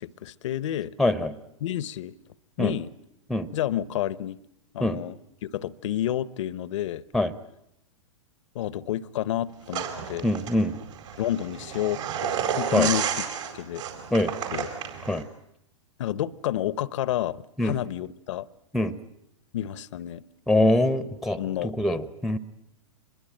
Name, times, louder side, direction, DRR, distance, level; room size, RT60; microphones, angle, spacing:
voice 1, 0.0-0.9 1.6-2.2 2.6-2.9 3.5-4.4 4.7-5.2 5.5-7.0 8.5-10.3 11.2-13.0 13.5-13.8 14.5-14.7 16.0-18.5 19.5-20.2 21.4-21.8, left 12 dB, 60° left, 20 dB, 0.9 m, -30 dB
voice 2, 1.0-1.3 2.6-2.7 3.3-3.5 4.8-5.0 7.1-7.3 10.2-10.8 12.7-12.9 14.1-14.3 15.1-15.2 17.6-17.7 18.7-18.9 20.5-22.4, left 1 dB, ahead, 15 dB, 1.0 m, -24 dB
sound 1, 9.7-15.2, right 8 dB, 65° right, 4.8 m, -31 dB
24.5 x 21.5 x 8.9 m, 0.78 s
hypercardioid pair, 120°, 17 cm